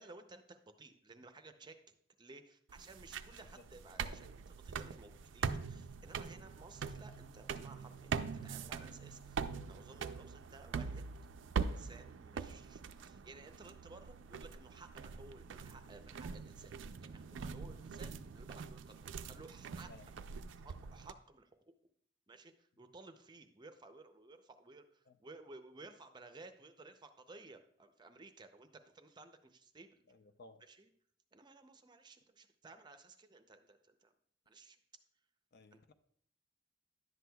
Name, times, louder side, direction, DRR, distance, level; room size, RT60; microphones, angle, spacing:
voice 1, 0.0-11.0 11.6-16.7 17.0-19.9 20.6-21.7 22.3-30.0 30.6-30.9 31.3-34.1 34.5-34.8 35.7-35.9, right 3 dB, 25° right, 0.5 m, -56 dB
sound 1, 2.7-21.1, right 5 dB, 75° right, 0.4 m, -43 dB
voice 2, 30.1-30.6 35.5-35.9, left 3 dB, 55° left, 0.5 m, -58 dB
11.0 x 7.8 x 2.3 m
head